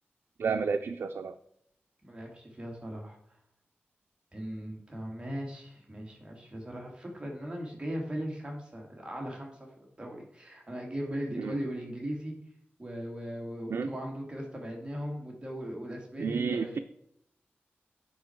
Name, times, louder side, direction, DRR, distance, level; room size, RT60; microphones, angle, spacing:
voice 1, 0.4-1.3 11.4-11.6 13.7-13.9 16.2-16.8, right 5 dB, 85° right, 5 dB, 0.5 m, -31 dB
voice 2, 2.0-3.2 4.3-12.3 12.8-16.8, equal, 25° right, -1 dB, 2.5 m, -38 dB
9.8 x 6.1 x 4.6 m, 0.72 s
wide cardioid pair, 95°, 4 cm